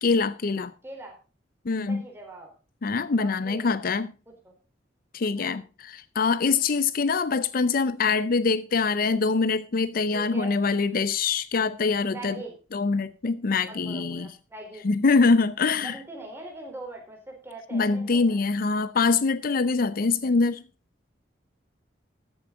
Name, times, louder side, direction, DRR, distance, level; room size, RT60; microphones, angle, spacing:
voice 1, 0.0-0.7 1.7-2.0 2.8-4.1 5.1-12.4 12.7-14.3 14.8-16.0 17.7-20.6, left 4 dB, 50° left, 0.5 m, -24 dB
voice 2, 0.8-1.1 1.9-2.5 3.2-3.8 4.3-4.4 5.4-5.6 10.1-10.6 12.1-12.5 13.7-14.9 15.8-18.4, right 2 dB, 15° right, 3.8 m, -41 dB
14.0 x 9.4 x 3.8 m
head